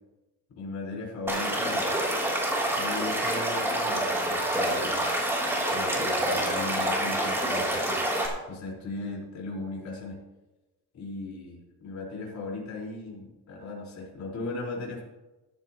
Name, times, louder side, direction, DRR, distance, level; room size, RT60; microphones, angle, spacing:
voice 1, 0.5-2.0 2.8-5.0 5.7-8.0 8.5-10.2 10.9-15.0, left 3 dB, 45° left, -2 dB, 4.8 m, -37 dB
Stream / Liquid, 1.3-8.3, right 1 dB, 5° right, 3.3 m, -27 dB
14.5 x 13.0 x 3.1 m, 1.1 s
cardioid pair, 150°, 39 cm